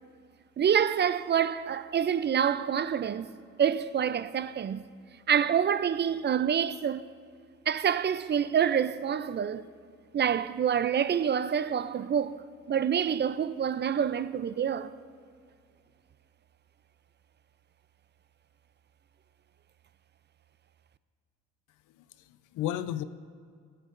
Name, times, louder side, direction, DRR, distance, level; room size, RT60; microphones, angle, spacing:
voice 1, 0.6-3.3 3.6-4.8 5.3-7.0 7.7-9.7 10.1-14.9, right 8 dB, 35° right, 0.4 m, -27 dB
voice 2, 22.0-23.0, left 12 dB, 85° left, 0.5 m, -34 dB
23.5 x 7.9 x 2.5 m
cardioid pair, 90°, 30 cm